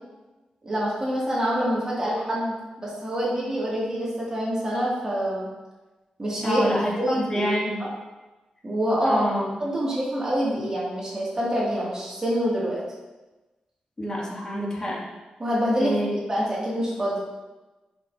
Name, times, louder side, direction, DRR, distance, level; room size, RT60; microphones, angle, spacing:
voice 1, 0.6-5.5 6.2-6.6 7.0-7.5 7.8-7.9 8.6-9.3 9.6-12.8 15.4-15.9 16.3-17.2, equal, 25° right, -6 dB, 2.4 m, -26 dB
voice 2, 6.4-7.8 9.0-9.5 14.0-15.0 15.8-16.1, equal, 30° left, -4 dB, 2.3 m, -27 dB
10.5 x 6.1 x 2.8 m, 1.1 s
wide cardioid pair, 100°, 3 cm